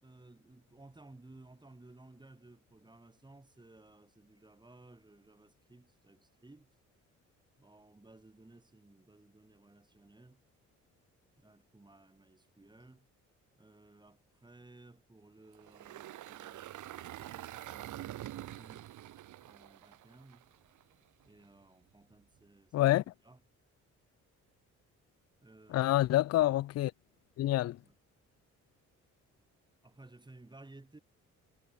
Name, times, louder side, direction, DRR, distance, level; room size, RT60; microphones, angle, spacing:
voice 1, 0.0-6.7 7.6-10.4 11.4-13.1 13.6-18.9 19.4-20.5 21.2-23.0 23.2-23.4 25.4-25.9 27.6-28.0 29.8-31.0, right 2 dB, 15° right, 4.6 m, -58 dB
Engine, 15.5-20.8, right 13 dB, 80° right, 2.8 m, -46 dB
voice 2, 22.7-23.0 25.7-26.9 27.4-27.8, left 15 dB, 55° left, 0.5 m, -27 dB
cardioid pair, 90°, 30 cm